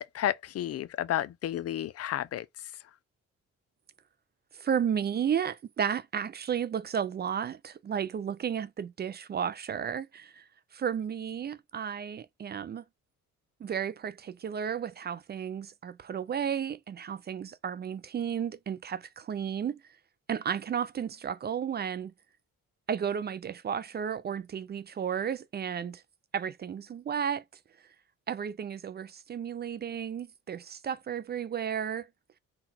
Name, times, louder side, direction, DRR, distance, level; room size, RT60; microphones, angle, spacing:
voice 1, 0.0-2.5, left 11 dB, 55° left, 0.5 m, -31 dB
voice 2, 4.5-10.4 10.7-12.8 13.6-19.8 20.3-22.1 22.9-26.0 26.3-27.4 28.3-32.1, right 8 dB, 35° right, 0.4 m, -33 dB
3.8 x 2.3 x 4.2 m
cardioid pair, 90°, 30 cm